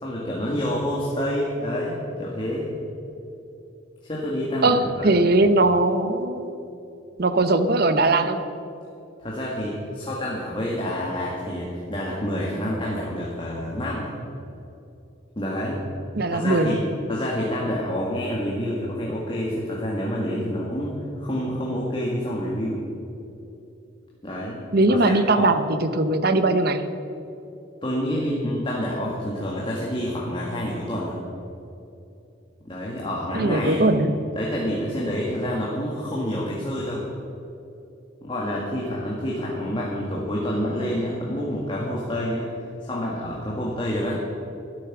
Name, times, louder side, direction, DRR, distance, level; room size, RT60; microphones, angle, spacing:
voice 1, 0.0-2.7 4.0-5.3 9.2-14.1 15.4-15.8 16.3-22.8 24.2-25.5 27.8-31.2 32.6-33.9 34.4-37.1 38.2-42.5 42.8-44.2, equal, 25° left, -4 dB, 1.9 m, -28 dB
voice 2, 4.6-6.5 7.2-8.4 16.1-16.8 24.7-26.9 33.3-34.1, right 2 dB, 50° right, 10 dB, 0.8 m, -20 dB
13.0 x 11.5 x 6.1 m, 2.8 s
head